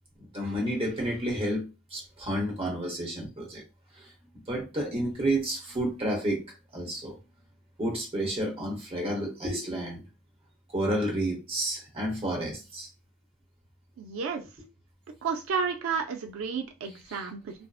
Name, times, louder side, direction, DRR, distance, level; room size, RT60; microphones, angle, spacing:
voice 1, 0.2-1.6 1.9-3.6 4.5-6.4 6.7-7.2 7.8-10.0 10.7-12.9, right 1 dB, 30° right, 0.9 m, -30 dB
voice 2, 14.0-14.4 15.2-17.5, right 5 dB, 90° right, 0.4 m, -31 dB
2.6 x 2.0 x 2.3 m
head